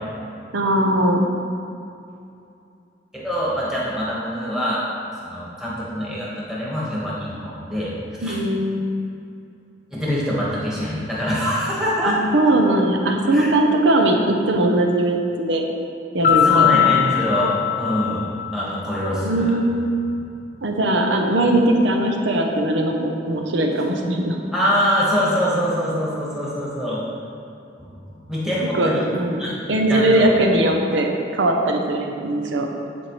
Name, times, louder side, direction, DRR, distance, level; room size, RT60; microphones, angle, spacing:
voice 1, 0.5-1.3 8.2-8.9 12.0-15.6 16.1-16.9 19.1-19.7 20.6-24.4 28.7-29.4 29.7-32.7, right 1 dB, 80° right, 2 dB, 0.7 m, -20 dB
voice 2, 3.1-4.8 5.2-7.9 8.2-8.4 9.9-12.4 13.3-13.5 16.4-18.2 18.5-19.6 24.5-27.0 27.8-29.0 29.4-29.5 29.9-30.3, equal, 5° right, -8 dB, 1.4 m, -24 dB
Piano, 16.2-19.0, left 10 dB, 45° left, 0.6 m, -19 dB
9.9 x 4.4 x 3.1 m, 2.6 s
head